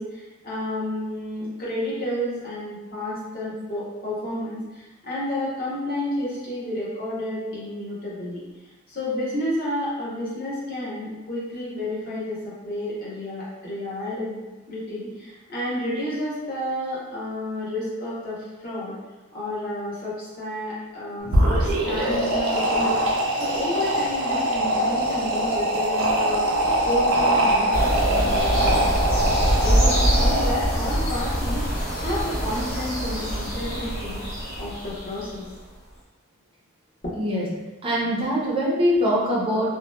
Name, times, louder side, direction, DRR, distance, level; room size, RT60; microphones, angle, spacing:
voice 1, 0.0-8.4 8.9-19.0 19.3-22.9 23.4-26.5 26.8-28.9 29.6-34.2 34.6-35.5 37.0-37.1, left 1 dB, 40° left, -8 dB, 0.8 m, -31 dB
sound 1, 21.2-30.9, right 1 dB, 75° right, 0.5 m, -23 dB
sound 2, 27.7-35.5, equal, 75° left, 0.9 m, -24 dB
voice 2, 37.2-37.5 37.8-39.7, equal, 25° right, -5 dB, 0.5 m, -22 dB
2.8 x 2.1 x 2.2 m, 1.1 s
head